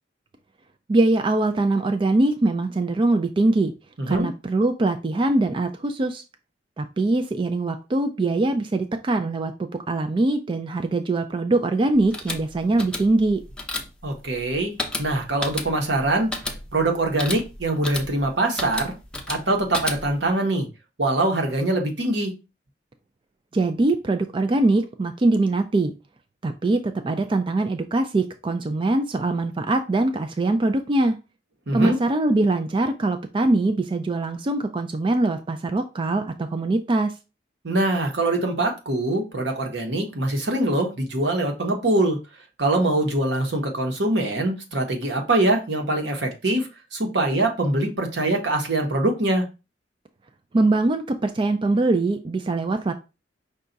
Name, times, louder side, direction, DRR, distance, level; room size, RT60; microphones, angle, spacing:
voice 1, 0.9-3.7 4.1-6.2 6.8-13.4 23.5-25.9 26.4-31.2 31.7-37.1 50.5-52.9, right 2 dB, 30° right, 7 dB, 0.4 m, -22 dB
voice 2, 4.0-4.3 14.0-16.4 16.7-18.9 19.3-20.7 21.0-22.3 31.7-32.0 37.6-42.2 42.6-49.5, right 2 dB, 75° right, 3 dB, 1.1 m, -23 dB
sound 1, 11.9-20.3, left 2 dB, 5° left, 0.7 m, -33 dB
5.4 x 2.4 x 3.9 m, 0.29 s
head